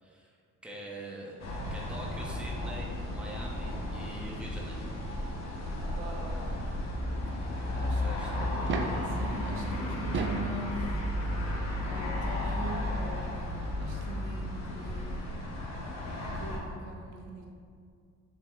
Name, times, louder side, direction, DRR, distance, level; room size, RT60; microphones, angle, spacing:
voice 1, 0.0-0.4 0.6-4.8 8.0-8.7, right 1 dB, 5° right, -3 dB, 0.7 m, -44 dB
sound 1, 1.4-16.6, left 1 dB, 60° left, 1.0 m, -34 dB
voice 2, 5.9-6.5 7.8-8.0 8.3-8.6 9.0-11.0 11.9-15.4 16.3-17.5, right 1 dB, 80° right, 0 dB, 0.8 m, -42 dB
sound 2, 8.5-9.1 9.9-10.5 11.8-11.9 13.7-13.8 14.0-14.1, right 4 dB, 40° right, 0.4 m, -33 dB
5.7 x 3.4 x 2.3 m, 2.2 s
cardioid pair, 90°, 30 cm